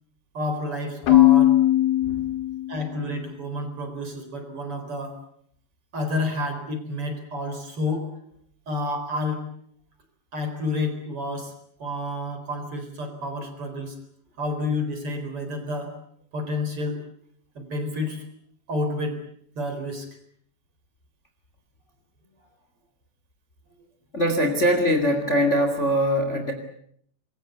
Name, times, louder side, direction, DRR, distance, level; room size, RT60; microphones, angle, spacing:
voice 1, 0.3-1.6 2.7-5.2 5.9-8.1 8.7-9.4 10.3-11.5 11.8-14.0 14.4-15.9 16.3-17.0 17.5-18.2 18.7-19.2 19.5-20.1, left 2 dB, 35° right, 7 dB, 4.8 m, -29 dB
Keyboard (musical), 1.1-2.9, left 15 dB, 75° left, 3.3 m, -18 dB
voice 2, 24.1-26.5, equal, 20° left, 6 dB, 2.2 m, -22 dB
26.5 x 22.0 x 8.2 m, 0.66 s
omnidirectional pair, 4.8 m